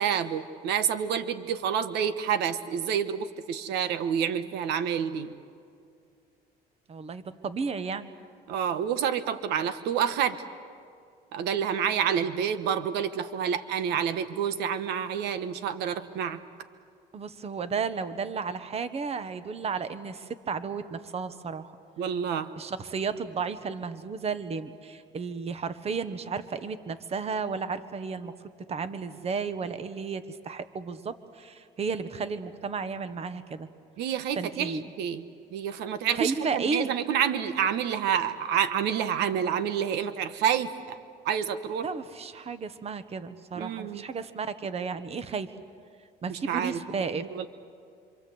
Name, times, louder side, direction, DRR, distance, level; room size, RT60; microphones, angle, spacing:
voice 1, 0.0-5.3 8.5-10.4 11.3-16.4 22.0-22.5 34.0-35.2 35.5-41.0 41.2-41.9 43.5-44.0 46.3-46.8 47.2-47.5, right 8 dB, 85° right, 11 dB, 1.2 m, -28 dB
voice 2, 6.9-8.1 17.1-21.7 22.6-28.3 28.7-33.7 34.3-34.8 36.1-36.9 41.8-45.5 46.2-47.5, right 5 dB, 40° right, 12 dB, 1.3 m, -33 dB
26.5 x 26.5 x 8.0 m, 2.3 s
cardioid pair, 110°, 17 cm